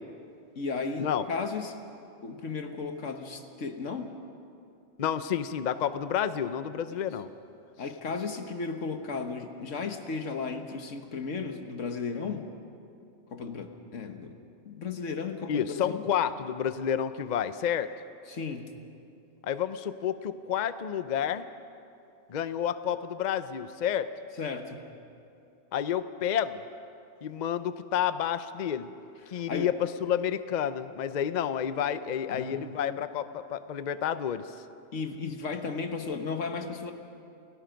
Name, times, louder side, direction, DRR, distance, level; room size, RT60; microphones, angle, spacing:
voice 1, 0.6-1.8 2.2-4.1 7.8-12.5 13.3-14.4 14.7-16.0 18.3-18.7 24.4-24.8 29.3-29.7 32.3-33.0 34.9-36.9, left 4 dB, 85° left, 6 dB, 1.7 m, -35 dB
voice 2, 5.0-7.3 15.5-17.9 19.4-21.5 22.3-24.1 25.7-26.6 27.2-28.9 29.3-34.5, left 9 dB, 45° left, 12 dB, 0.6 m, -30 dB
28.5 x 17.5 x 5.2 m, 2.6 s
omnidirectional pair, 1.2 m